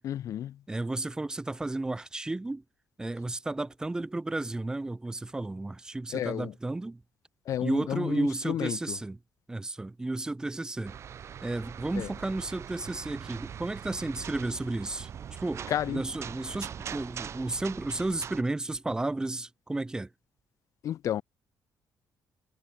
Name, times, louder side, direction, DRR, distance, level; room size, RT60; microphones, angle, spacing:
voice 1, 0.0-0.6 6.1-6.5 7.5-9.0 12.0-12.1 15.7-16.0 20.8-21.2, left 11 dB, 55° left, 0.6 m, -32 dB
voice 2, 0.7-2.6 3.0-7.0 7.6-9.2 9.5-11.0 11.4-20.1, right 2 dB, 10° right, 2.9 m, -33 dB
sound 1, 10.8-18.4, right 8 dB, 45° right, 7.0 m, -42 dB
cardioid pair, 160°, 7 cm